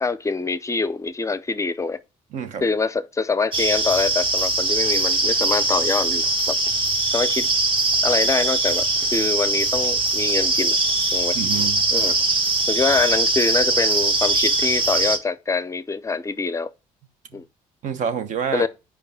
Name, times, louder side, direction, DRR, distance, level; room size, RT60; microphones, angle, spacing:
voice 1, 0.0-2.0 2.6-6.6 7.1-7.5 8.0-8.9 9.1-10.8 11.1-11.4 11.9-12.1 12.7-16.7 17.3-17.4 18.5-18.7, left 4 dB, 20° left, 0.5 m, -24 dB
voice 2, 2.3-2.6 11.3-12.2 17.3-17.4 17.8-18.7, right 7 dB, 65° right, 0.9 m, -28 dB
sound 1, 3.5-15.2, right 2 dB, 35° right, 1.4 m, -21 dB
5.6 x 4.8 x 5.6 m
cardioid pair, 100°, 14 cm